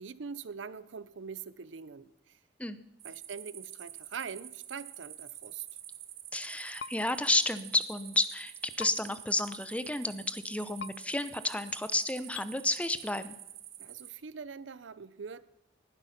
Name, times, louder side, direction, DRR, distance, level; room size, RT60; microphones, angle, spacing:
voice 1, 0.0-2.4 3.0-5.7 13.8-15.4, right 6 dB, 85° right, 17 dB, 0.6 m, -43 dB
sound 1, 3.0-14.1, right 12 dB, 55° right, 1.2 m, -48 dB
voice 2, 6.3-13.3, left 2 dB, 5° left, 13 dB, 0.7 m, -31 dB
sound 2, 6.8-6.9 8.8-8.9 10.8-10.9 12.3-12.5, left 7 dB, 65° left, 0.5 m, -40 dB
19.5 x 11.5 x 5.8 m, 0.87 s
head